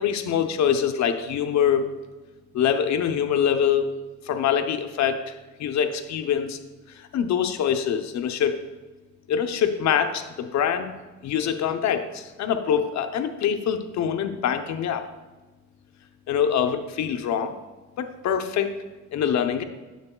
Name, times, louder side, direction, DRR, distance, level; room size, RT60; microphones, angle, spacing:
voice 1, 0.0-1.9 2.5-3.9 4.2-6.6 6.9-8.6 9.3-10.9 11.2-15.1 16.3-17.5 18.0-18.7 19.1-19.6, left 8 dB, 65° left, 7 dB, 0.7 m, -24 dB
9.3 x 6.8 x 2.3 m, 1.2 s
cardioid pair, 90°, 30 cm